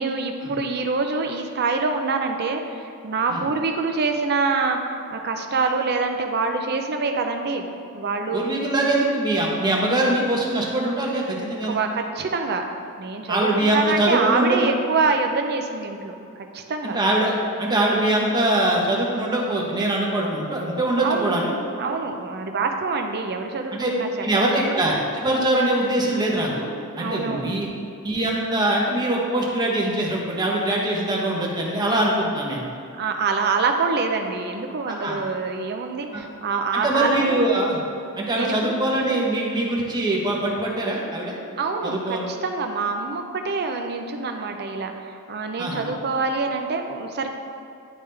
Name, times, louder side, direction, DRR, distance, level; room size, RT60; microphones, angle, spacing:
voice 1, 0.0-7.6 7.9-8.4 11.6-12.6 13.0-17.0 21.0-21.4 21.8-24.1 24.3-24.5 27.0-27.6 33.0-37.4 38.3-38.7 41.6-47.3, right 4 dB, 50° right, 4 dB, 0.6 m, -25 dB
voice 2, 8.3-11.8 13.3-14.7 16.8-21.5 23.7-23.9 24.2-24.9 25.2-27.7 28.0-32.6 34.9-35.2 36.1-36.2 36.7-37.8 38.2-41.3 41.8-42.3 45.6-45.8, right 1 dB, 20° right, -3 dB, 1.0 m, -23 dB
10.5 x 3.6 x 3.3 m, 2.6 s
head